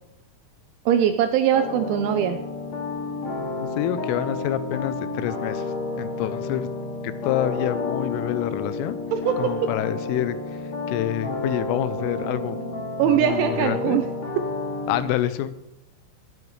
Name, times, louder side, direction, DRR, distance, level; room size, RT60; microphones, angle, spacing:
voice 1, 0.9-2.4 9.1-9.5 13.0-14.1, right 9 dB, 85° right, 7 dB, 2.7 m, -21 dB
sound 1, 1.5-15.0, left 3 dB, 45° left, 2.7 m, -30 dB
voice 2, 3.6-5.7 6.0-6.7 7.2-9.0 9.4-10.4 10.9-12.6 13.0-14.0 14.9-15.5, left 12 dB, 85° left, 13 dB, 3.1 m, -27 dB
22.0 x 9.8 x 3.2 m, 0.88 s
omnidirectional pair, 5.9 m